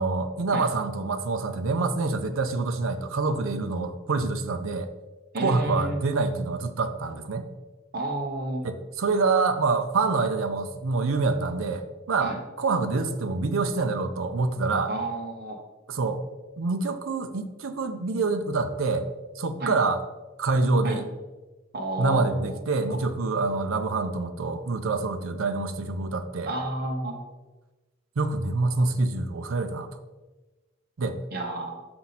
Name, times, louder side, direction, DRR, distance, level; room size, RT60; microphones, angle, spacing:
voice 1, 0.0-4.9 5.4-7.5 8.6-12.3 12.6-14.9 15.9-16.2 16.6-19.1 19.4-20.0 20.4-21.0 22.0-26.5 28.2-29.9 31.0-31.2, right 3 dB, 85° right, 8 dB, 0.5 m, -26 dB
voice 2, 5.3-6.0 7.9-8.6 12.2-12.4 14.9-15.6 19.6-19.7 20.8-21.0 21.7-22.6 22.9-23.0 26.5-27.2 31.3-31.8, right 1 dB, 50° right, 1 dB, 1.0 m, -31 dB
5.9 x 5.3 x 4.1 m, 1.2 s
head